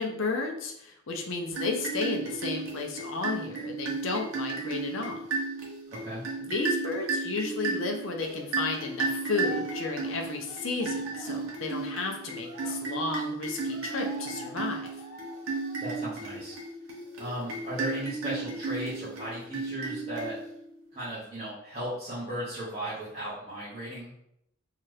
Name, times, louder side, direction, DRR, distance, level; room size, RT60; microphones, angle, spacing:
voice 1, 0.0-5.2 6.4-14.9, left 3 dB, 65° left, 3 dB, 0.5 m, -33 dB
sound 1, 1.5-20.7, right 3 dB, 80° right, 0.7 m, -34 dB
voice 2, 5.9-6.2 15.8-16.6 17.2-20.3 20.9-24.1, right 1 dB, 30° right, -12 dB, 0.8 m, -36 dB
Cheering, 8.1-16.1 16.5-16.7 17.0-18.0, equal, 80° left, 1.0 m, -48 dB
2.7 x 2.4 x 3.2 m, 0.76 s
head